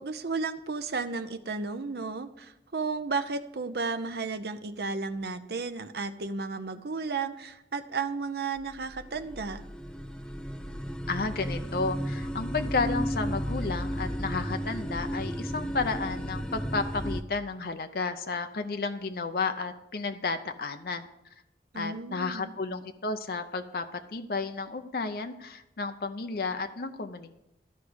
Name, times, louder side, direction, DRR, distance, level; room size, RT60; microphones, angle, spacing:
voice 1, 0.0-9.6 21.7-22.5, right 4 dB, 65° right, 8 dB, 0.7 m, -33 dB
sound 1, 8.6-17.2, equal, 5° left, 0.5 m, -34 dB
voice 2, 11.1-21.1 21.7-27.3, left 4 dB, 55° left, 7 dB, 0.6 m, -32 dB
13.5 x 4.7 x 7.9 m, 0.88 s
head